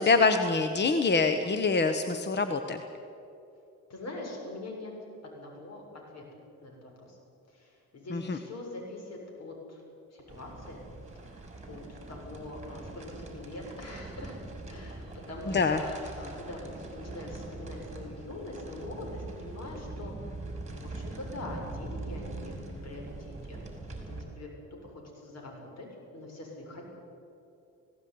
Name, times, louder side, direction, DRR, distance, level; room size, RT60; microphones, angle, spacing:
voice 1, 0.0-2.8 8.1-8.4 15.5-15.8, left 4 dB, 35° left, 8 dB, 1.3 m, -25 dB
voice 2, 3.9-4.9 5.2-6.2 6.6-7.2 7.5-9.8 10.1-10.8 11.1-14.4 14.7-22.6 22.8-23.6 24.1-25.9 26.1-26.9, left 2 dB, 55° left, 0 dB, 7.0 m, -43 dB
sound 1, 10.3-24.2, right 2 dB, 25° right, 5.5 m, -42 dB
19.0 x 17.0 x 9.7 m, 2.8 s
cardioid pair, 90°, 30 cm